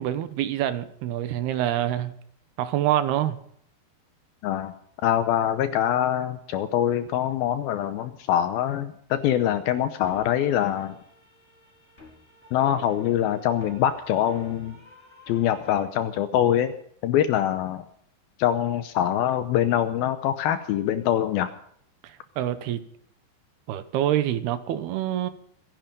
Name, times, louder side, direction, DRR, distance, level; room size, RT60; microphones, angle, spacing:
voice 1, 0.0-2.1 2.6-3.4 22.0-22.8 23.7-25.3, right 12 dB, 70° right, 12 dB, 2.6 m, -26 dB
voice 2, 4.4-4.7 5.0-11.0 12.5-14.8 15.3-16.7 17.0-17.8 18.4-21.5, left 10 dB, 85° left, 11 dB, 2.1 m, -24 dB
sound 1, 10.1-15.8, left 1 dB, 15° left, 4.7 m, -50 dB
25.0 x 10.5 x 5.3 m, 0.65 s
omnidirectional pair, 5.3 m